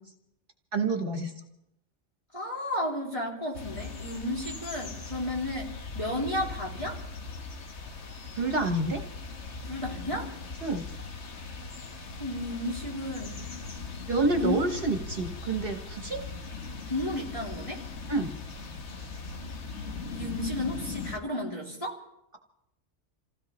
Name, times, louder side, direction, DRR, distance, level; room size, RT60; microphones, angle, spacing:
voice 1, 0.7-1.3 8.3-9.0 10.6-10.8 14.1-16.2 18.1-18.3, right 3 dB, 50° right, 4 dB, 1.3 m, -28 dB
voice 2, 2.3-7.0 9.6-10.3 12.2-13.4 14.4-14.6 16.9-17.8 20.1-22.0, left 1 dB, 25° left, -3 dB, 3.2 m, -33 dB
sound 1, 3.5-21.2, left 4 dB, 70° left, 1.5 m, -39 dB
28.0 x 16.0 x 3.1 m, 0.84 s
omnidirectional pair, 1.2 m